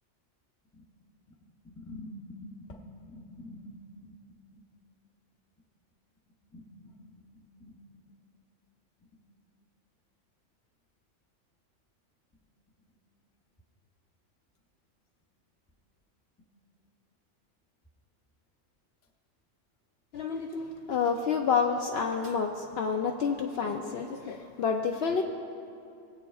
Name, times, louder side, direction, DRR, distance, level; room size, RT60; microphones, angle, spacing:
voice 1, 1.6-4.6 6.5-7.8, left 1 dB, 15° left, 1 dB, 0.6 m, -47 dB
voice 2, 20.1-25.2, left 6 dB, 65° left, 3 dB, 0.7 m, -29 dB
22.0 x 8.0 x 2.4 m, 2.6 s
omnidirectional pair, 1.3 m